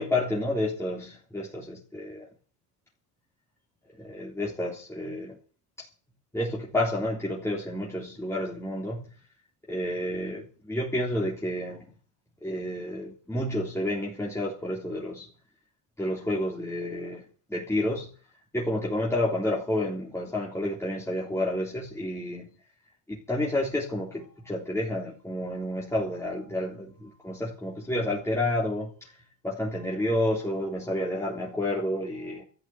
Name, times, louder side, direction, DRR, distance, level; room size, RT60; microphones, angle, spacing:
voice 1, 0.0-2.3 4.0-5.4 6.3-9.0 9.7-11.9 12.4-15.3 16.0-17.2 17.5-18.1 18.5-22.5 23.1-29.1 29.4-32.4, left 1 dB, 5° left, 3.6 m, -30 dB
13.5 x 10.0 x 9.2 m
cardioid pair, 125°, 40 cm